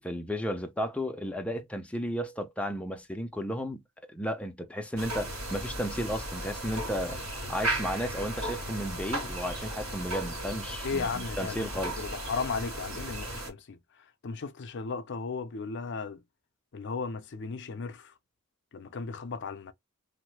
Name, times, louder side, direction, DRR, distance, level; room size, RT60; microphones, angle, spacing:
voice 1, 0.0-3.8 4.1-7.2 7.5-12.0, equal, 5° left, 0.5 m, -34 dB
sound 1, 5.0-13.5, right 1 dB, 70° right, 1.9 m, -35 dB
voice 2, 10.8-11.7 12.0-13.8 14.2-16.2 16.7-18.1 18.7-19.7, left 4 dB, 55° left, 0.5 m, -35 dB
3.1 x 2.1 x 3.1 m
head